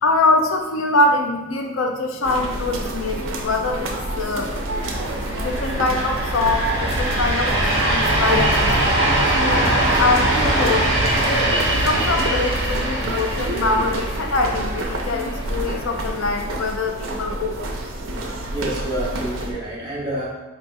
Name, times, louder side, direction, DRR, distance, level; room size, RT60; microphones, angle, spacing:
voice 1, 0.0-4.6 5.4-8.5 9.3-17.6, left 2 dB, 80° left, 4 dB, 0.5 m, -23 dB
sound 1, 2.2-19.5, right 1 dB, 75° right, 0.6 m, -29 dB
sound 2, 4.4-16.3, right 1 dB, 55° right, 1.0 m, -22 dB
voice 2, 18.2-20.3, right 1 dB, 25° right, -6 dB, 1.1 m, -28 dB
4.2 x 3.0 x 3.3 m, 1.1 s
head